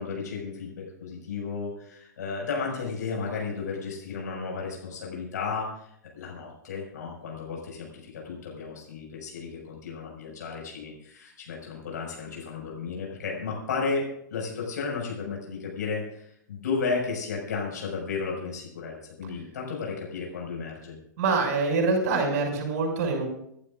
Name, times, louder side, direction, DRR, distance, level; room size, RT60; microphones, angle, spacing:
voice 1, 0.0-5.7 6.1-21.0, left 4 dB, 65° left, -1 dB, 6.1 m, -33 dB
voice 2, 21.2-23.2, right 4 dB, 50° right, 0 dB, 6.4 m, -25 dB
27.5 x 11.5 x 2.6 m, 0.73 s
figure-of-eight pair, 105°, 10 cm